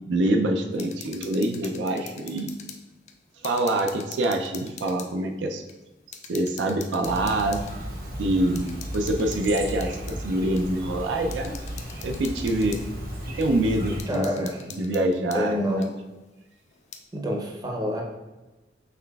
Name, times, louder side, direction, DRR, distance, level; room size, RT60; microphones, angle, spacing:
voice 1, 0.1-2.5 3.4-5.6 6.3-7.6 8.2-8.7 8.9-11.6 12.0-12.8 13.4-15.9, right 1 dB, 75° right, 5 dB, 0.4 m, -25 dB
sound 1, 0.7-2.8 3.1-5.1 5.7-5.8 6.1-7.7 8.6-10.2 10.6-10.7 11.3-12.9 13.4-13.5 14.0-15.4 15.8-15.9 16.7-17.0, left 7 dB, 40° left, 0.4 m, -43 dB
Chirp tweet, 7.0-14.0, equal, 55° right, 0.9 m, -35 dB
voice 2, 14.1-14.6 15.3-15.9 17.1-18.0, equal, 20° right, 0 dB, 0.6 m, -27 dB
5.8 x 3.3 x 2.3 m, 1.1 s
head